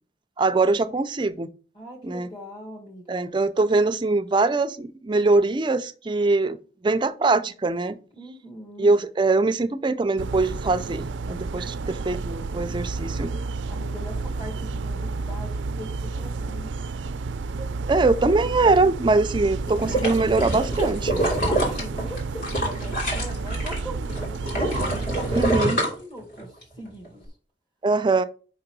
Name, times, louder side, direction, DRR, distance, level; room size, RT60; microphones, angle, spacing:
voice 1, 0.4-1.5 2.0-2.3 3.1-6.6 6.8-8.0 8.8-13.4 17.6-21.2 25.3-25.8 27.8-28.2, right 3 dB, 25° right, 0.4 m, -22 dB
voice 2, 1.7-3.3 8.2-9.0 13.7-15.9 16.2-16.7 21.0-27.2, equal, 30° left, 1.9 m, -40 dB
sound 1, 10.2-25.6, right 3 dB, 85° right, 0.4 m, -31 dB
sound 2, 19.7-23.8 24.1-26.6 27.0-27.1, right 1 dB, 50° left, 2.8 m, -26 dB
5.4 x 3.8 x 5.9 m
head